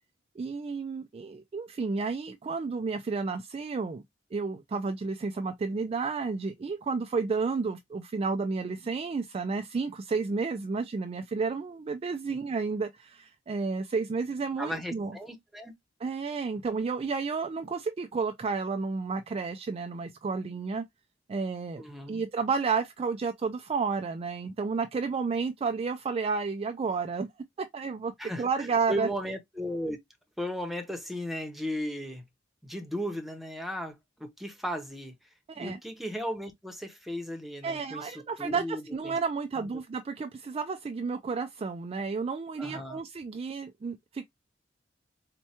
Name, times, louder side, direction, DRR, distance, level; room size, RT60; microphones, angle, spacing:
voice 1, 0.4-4.0 4.3-15.2 16.0-20.9 21.3-21.8 22.1-27.3 27.6-29.1 35.5-35.8 37.6-44.3, right 4 dB, 30° right, 0.3 m, -31 dB
voice 2, 14.6-15.7 21.8-22.2 28.2-30.0 30.4-32.2 32.6-35.1 35.6-39.2 39.6-39.7 42.6-43.0, equal, ahead, 0.7 m, -36 dB
4.3 x 2.2 x 2.7 m
head